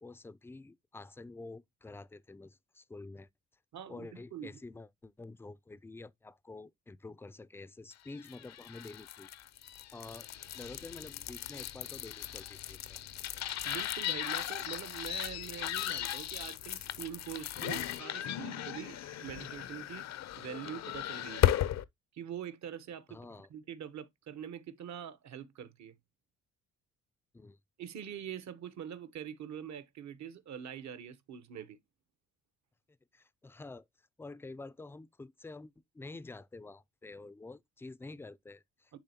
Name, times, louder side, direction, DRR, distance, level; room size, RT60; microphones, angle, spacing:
voice 1, 0.0-3.3 3.9-9.3 9.9-10.3 10.5-13.0 23.1-23.5 27.3-27.6 33.1-33.9 34.2-39.0, left 3 dB, 10° left, 0.3 m, -48 dB
voice 2, 3.7-4.6 13.6-21.5 22.1-23.2 23.5-25.9 27.8-31.8 38.9-39.0, right 9 dB, 65° right, 1.0 m, -44 dB
sound 1, 8.2-21.8, left 12 dB, 60° left, 0.6 m, -36 dB
10.5 x 3.5 x 2.8 m
cardioid pair, 90°, 30 cm